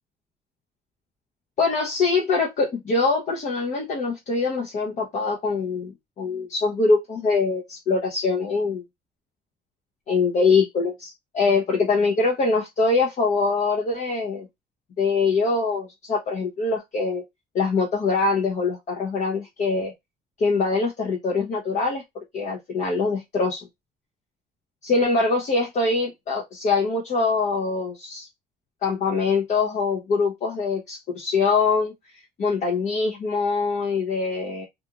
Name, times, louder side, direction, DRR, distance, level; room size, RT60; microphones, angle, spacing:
voice 1, 1.6-8.8 10.1-14.5 15.0-17.2 17.5-19.9 20.4-23.7 24.8-28.3 28.8-31.9 32.4-34.7, left 4 dB, 45° left, 0.8 m, -23 dB
2.5 x 2.5 x 2.8 m
cardioid pair, 110°, 17 cm